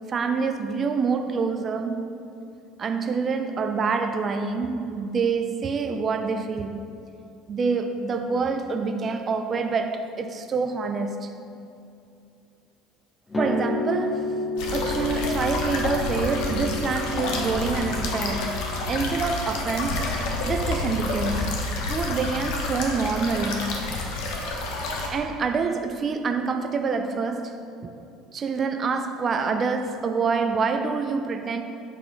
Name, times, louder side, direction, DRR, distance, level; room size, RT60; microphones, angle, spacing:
voice 1, 0.1-2.1 2.8-6.9 7.5-11.3 13.4-18.6 18.9-20.1 20.5-21.6 21.9-23.8 25.1-27.9 28.3-31.6, right 4 dB, 40° right, 0.5 m, -26 dB
sound 1, 13.3-21.3, left 2 dB, 20° left, 0.8 m, -33 dB
sound 2, 14.6-25.1, left 2 dB, 75° left, 1.1 m, -29 dB
8.4 x 4.8 x 4.1 m
supercardioid pair, 85°, 0 cm